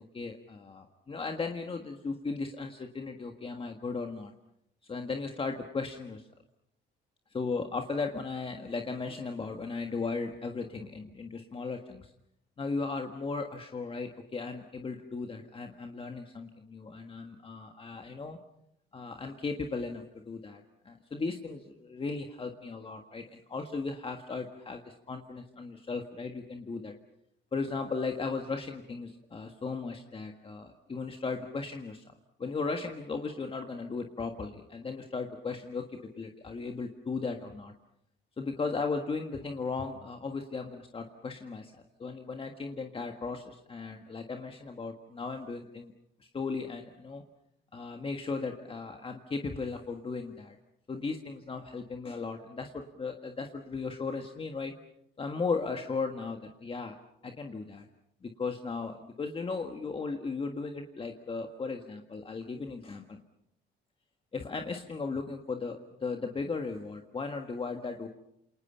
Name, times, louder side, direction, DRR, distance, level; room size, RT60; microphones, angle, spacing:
voice 1, 0.0-4.3 4.8-6.3 7.3-12.1 12.6-18.4 18.9-26.9 27.5-32.1 32.4-37.7 38.4-41.7 42.0-45.9 46.2-47.2 47.7-50.6 50.9-54.7 55.2-56.9 57.2-57.9 58.2-63.2 64.3-68.1, left 4 dB, 25° left, 4 dB, 1.6 m, -36 dB
28.5 x 28.0 x 5.7 m, 0.77 s
cardioid pair, 135°, 20 cm